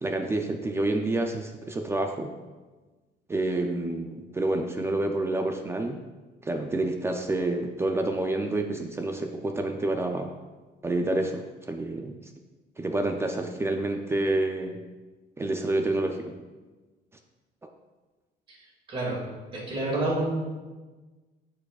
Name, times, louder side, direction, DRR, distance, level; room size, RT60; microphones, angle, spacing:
voice 1, 0.0-2.3 3.3-6.0 6.4-10.3 10.8-12.2 12.8-14.8 15.4-16.3, right 2 dB, 15° right, 4 dB, 0.3 m, -28 dB
voice 2, 18.9-19.2 19.5-20.2, right 2 dB, 30° right, -4 dB, 2.2 m, -28 dB
13.0 x 4.6 x 2.4 m, 1.3 s
cardioid pair, 175°, 18 cm